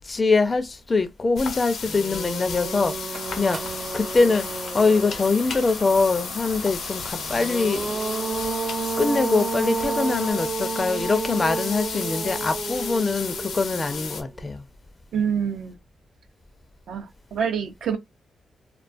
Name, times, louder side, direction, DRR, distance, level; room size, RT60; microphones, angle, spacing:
voice 1, 0.0-3.6 3.9-8.0 9.0-14.6, left 3 dB, 25° left, 0.4 m, -23 dB
sound 1, 1.4-14.2, left 5 dB, 75° left, 0.6 m, -34 dB
sound 2, 1.4-1.5 1.8-5.5 7.2-14.4, right 4 dB, 25° right, 0.5 m, -31 dB
sound 3, 2.7-10.3, right 4 dB, 50° right, 0.8 m, -41 dB
voice 2, 15.1-15.8 16.9-18.0, right 7 dB, 80° right, 0.5 m, -26 dB
2.3 x 2.3 x 2.4 m
wide cardioid pair, 130°, 0 cm